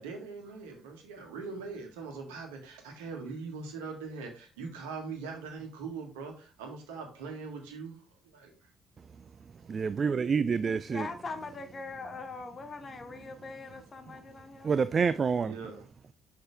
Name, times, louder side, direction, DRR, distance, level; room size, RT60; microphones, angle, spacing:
voice 1, 0.0-8.0 8.3-8.5 13.7-13.8 15.4-15.9, right 4 dB, 75° right, 1.6 m, -41 dB
voice 2, 9.7-11.1 14.6-15.5, right 5 dB, 40° right, 0.3 m, -27 dB
voice 3, 10.9-14.7, left 4 dB, 40° left, 1.2 m, -41 dB
6.5 x 5.6 x 3.4 m
figure-of-eight pair, 45°, 0 cm